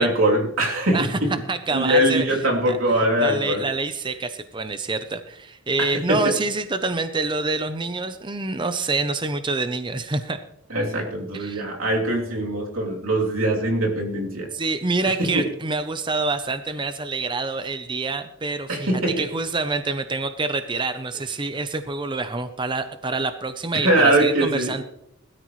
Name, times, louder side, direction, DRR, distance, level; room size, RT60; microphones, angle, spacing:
voice 1, 0.0-1.4 1.7-3.6 5.8-6.3 10.7-14.5 15.0-15.5 18.7-19.3 23.7-24.7, right 1 dB, 85° right, -1 dB, 3.1 m, -22 dB
voice 2, 1.5-2.2 2.6-2.8 3.2-10.4 11.3-11.6 14.5-24.8, right 3 dB, 25° right, 9 dB, 0.7 m, -26 dB
20.5 x 13.0 x 3.2 m, 0.76 s
head